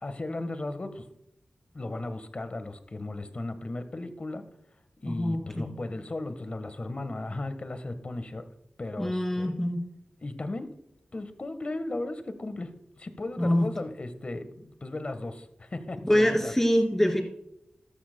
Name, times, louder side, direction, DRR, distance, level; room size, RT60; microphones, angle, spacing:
voice 1, 0.0-1.0 1.7-4.4 5.0-8.5 8.8-9.5 10.2-10.7 11.1-12.7 13.0-16.5, left 2 dB, 40° left, 10 dB, 1.3 m, -36 dB
voice 2, 5.1-5.7 9.0-9.9 13.4-13.7 16.0-17.2, equal, 10° left, 3 dB, 2.7 m, -25 dB
14.0 x 13.0 x 2.2 m, 0.80 s
wide cardioid pair, 90°, 3 cm